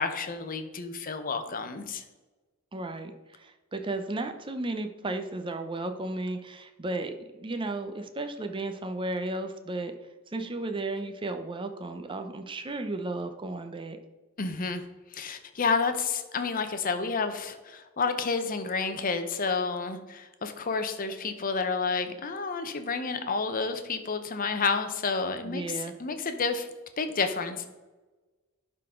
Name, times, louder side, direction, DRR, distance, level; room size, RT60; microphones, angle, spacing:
voice 1, 0.0-2.0 14.4-14.8 15.1-26.7 27.0-27.7, left 4 dB, 40° left, 8 dB, 0.7 m, -30 dB
voice 2, 2.7-7.1 7.4-9.9 10.3-14.0 25.4-25.9, right 2 dB, 25° right, 7 dB, 0.6 m, -34 dB
11.0 x 3.9 x 3.7 m, 1.2 s
head